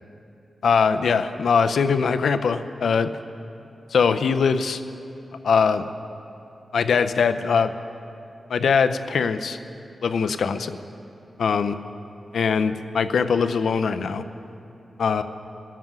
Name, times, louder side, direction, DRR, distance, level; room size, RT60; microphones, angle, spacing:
voice 1, 0.6-3.1 3.9-4.8 5.4-5.9 6.7-7.7 8.5-9.6 10.0-10.8 11.4-11.8 12.3-14.2 15.0-15.2, left 5 dB, 85° left, 10 dB, 0.5 m, -21 dB
21.5 x 7.5 x 6.0 m, 2.9 s
wide cardioid pair, 155°, 0 cm